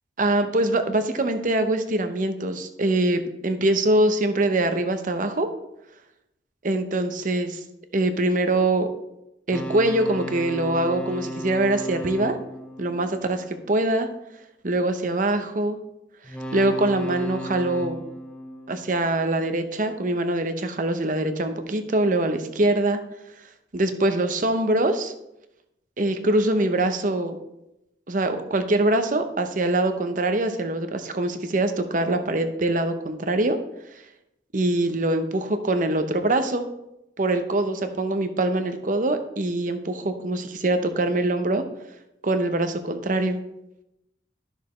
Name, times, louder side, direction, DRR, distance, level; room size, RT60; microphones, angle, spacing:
voice 1, 0.2-5.5 6.6-7.6 7.9-8.9 9.5-12.3 12.8-14.1 14.6-15.8 16.5-18.0 18.7-23.0 23.7-25.1 26.0-27.4 28.1-33.6 34.5-36.6 37.2-41.6 42.2-43.4, right 2 dB, 45° right, 8 dB, 0.8 m, -23 dB
sound 1, 9.5-13.9 16.2-19.5, right 1 dB, 5° left, 0.6 m, -36 dB
12.5 x 6.4 x 3.1 m, 0.88 s
head